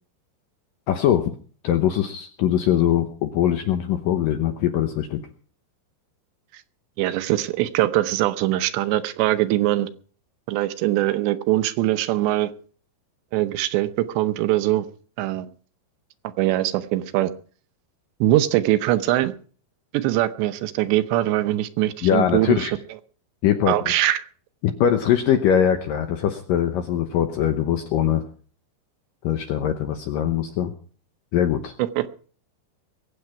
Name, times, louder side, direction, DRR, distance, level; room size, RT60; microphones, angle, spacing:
voice 1, 0.9-1.3 1.6-5.2 22.0-22.7 23.4-23.7 24.6-28.2 29.2-30.7 31.3-31.7, left 10 dB, 75° left, 7 dB, 2.1 m, -22 dB
voice 2, 7.0-9.9 10.5-12.5 13.3-14.9 15.2-15.5 16.4-17.3 18.2-19.3 19.9-22.7 23.7-24.3 31.8-32.1, right 15 dB, 80° right, 12 dB, 2.9 m, -22 dB
21.5 x 8.6 x 5.8 m, 0.43 s
omnidirectional pair, 5.2 m